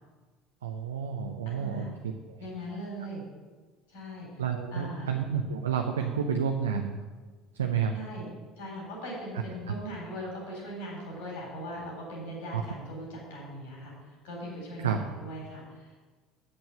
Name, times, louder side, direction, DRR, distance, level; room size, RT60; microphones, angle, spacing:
voice 1, 0.6-1.8 4.4-7.0 7.6-7.9 12.5-12.6 14.8-15.0, right 7 dB, 80° right, 3 dB, 0.6 m, -29 dB
voice 2, 1.5-1.9 2.4-3.2 3.9-4.4 4.7-5.2 6.0-6.1 7.9-13.9 14.2-16.0, equal, 70° left, -2 dB, 3.6 m, -40 dB
8.1 x 7.1 x 6.6 m, 1.3 s
hypercardioid pair, 65°, 0 cm